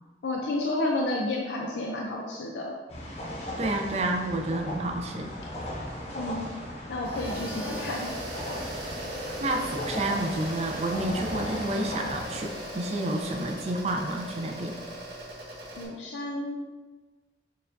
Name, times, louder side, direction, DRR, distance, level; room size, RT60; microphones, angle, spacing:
voice 1, 0.2-2.7 6.1-6.6 6.9-8.1 15.8-16.6, left 2 dB, 80° left, -2 dB, 0.5 m, -31 dB
sound 1, 2.9-12.4, equal, 35° left, 0.7 m, -37 dB
voice 2, 3.6-5.3 9.4-14.8, right 1 dB, 35° right, 3 dB, 0.4 m, -30 dB
sound 2, 7.0-15.9, right 1 dB, 85° right, 1.2 m, -38 dB
6.6 x 2.3 x 2.6 m, 1.3 s
head